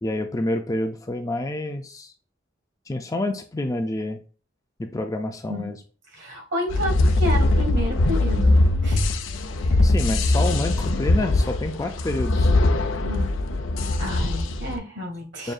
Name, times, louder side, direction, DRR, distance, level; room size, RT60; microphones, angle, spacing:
voice 1, 0.0-2.1 2.9-4.2 4.8-5.8 9.8-12.5 15.4-15.5, left 1 dB, 15° left, 0.4 m, -28 dB
voice 2, 6.1-9.0 9.6-9.8 13.0-13.3 14.0-15.5, left 1 dB, 65° right, 1.7 m, -31 dB
sound 1, 6.7-14.8, left 2 dB, 80° left, 0.5 m, -21 dB
6.1 x 2.7 x 2.3 m
head